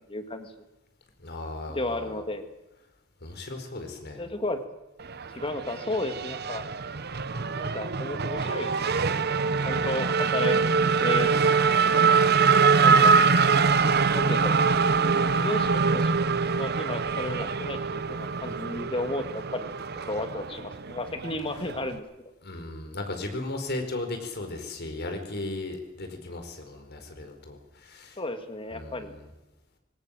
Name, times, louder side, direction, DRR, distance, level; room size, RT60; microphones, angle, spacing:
voice 1, 0.1-0.5 1.7-2.5 4.2-4.6 5.3-6.6 7.6-9.3 9.6-10.6 11.0-11.3 12.8-13.2 14.1-14.6 15.3-16.2 16.5-19.7 20.1-22.0 28.2-29.2, left 1 dB, 25° left, 8 dB, 2.0 m, -33 dB
voice 2, 1.2-2.2 3.2-4.2 9.5-9.8 22.4-28.2 28.7-29.1, left 2 dB, 50° left, 6 dB, 4.7 m, -36 dB
Race car auto racing / Accelerating revving vroom, 5.0-22.0, right 5 dB, 50° right, 1.0 m, -24 dB
21.0 x 18.0 x 7.7 m, 0.97 s
head